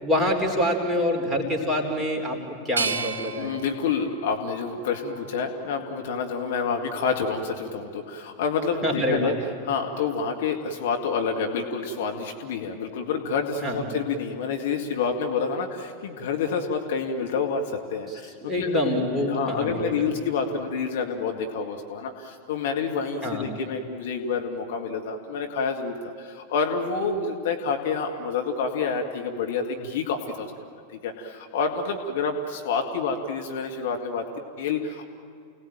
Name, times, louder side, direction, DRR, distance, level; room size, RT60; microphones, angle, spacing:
voice 1, 0.0-2.4 2.6-3.5 8.8-9.3 13.6-13.8 18.4-19.9 23.2-23.4, left 1 dB, 5° right, 0 dB, 4.3 m, -25 dB
sound 1, 2.8-5.7 6.2-7.1, right 4 dB, 70° right, 1.2 m, -34 dB
voice 2, 3.4-9.4 9.6-18.9 19.3-30.5 31.0-35.0, left 5 dB, 55° left, 3 dB, 2.1 m, -28 dB
29.5 x 18.5 x 9.0 m, 2.4 s
figure-of-eight pair, 90°, 0 cm